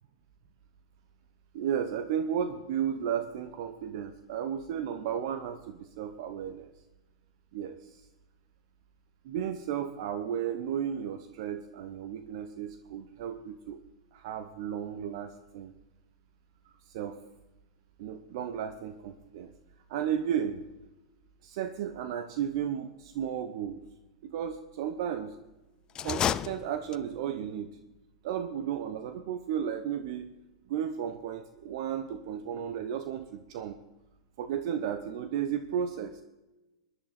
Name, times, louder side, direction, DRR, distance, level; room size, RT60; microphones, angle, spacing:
voice 1, 1.5-6.7 7.5-8.0 9.2-13.8 14.1-15.7 16.9-17.2 18.0-19.5 19.9-20.6 21.4-23.8 24.2-25.4 26.0-27.8 28.2-30.3 30.7-33.7 34.4-36.2, right 9 dB, 60° right, 9 dB, 1.0 m, -34 dB
sound 1, 25.9-27.3, left 10 dB, 30° left, 0.4 m, -31 dB
21.5 x 11.0 x 4.3 m, 1.0 s
hypercardioid pair, 100°, 3 cm